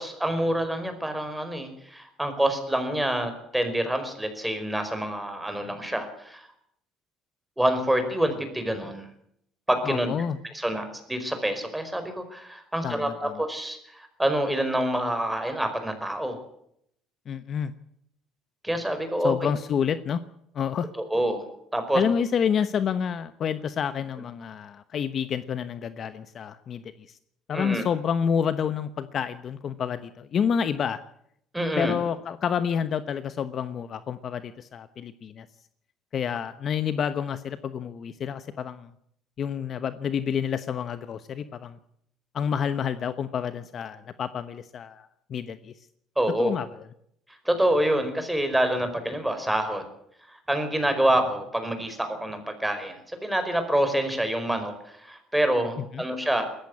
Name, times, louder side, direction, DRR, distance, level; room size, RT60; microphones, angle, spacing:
voice 1, 0.0-6.5 7.6-9.0 9.7-10.1 10.5-16.4 18.6-19.3 21.1-21.5 21.7-22.0 27.5-27.8 31.5-32.0 46.2-46.5 47.4-49.8 50.5-56.5, right 1 dB, 5° right, 7 dB, 4.9 m, -27 dB
voice 2, 9.8-10.4 12.8-13.4 17.3-17.7 19.2-20.2 20.5-20.9 21.9-27.2 27.5-31.0 31.8-35.5 36.1-38.9 39.4-41.8 42.3-45.7 46.4-46.7 55.9-56.0, left 7 dB, 45° left, 12 dB, 1.0 m, -29 dB
19.5 x 14.5 x 9.7 m, 0.71 s
cardioid pair, 115°, 0 cm